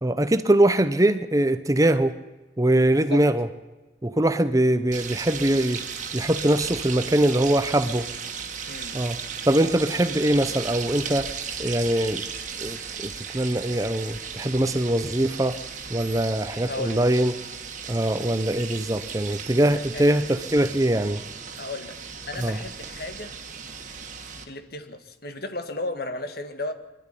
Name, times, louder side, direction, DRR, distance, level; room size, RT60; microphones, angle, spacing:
voice 1, 0.0-2.2 2.6-3.5 4.0-5.8 6.1-8.1 8.9-9.2 9.5-11.3 11.6-12.2 12.6-15.6 15.9-17.3 17.9-21.2 22.4-22.6, right 1 dB, 20° right, 11 dB, 0.7 m, -22 dB
sound 1, 4.9-24.4, right 6 dB, 40° right, 1.9 m, -36 dB
voice 2, 16.7-17.0 19.7-20.2 21.6-22.0 22.3-23.3 24.5-26.7, left 2 dB, 55° left, 8 dB, 1.9 m, -34 dB
24.0 x 12.0 x 10.0 m, 1.2 s
head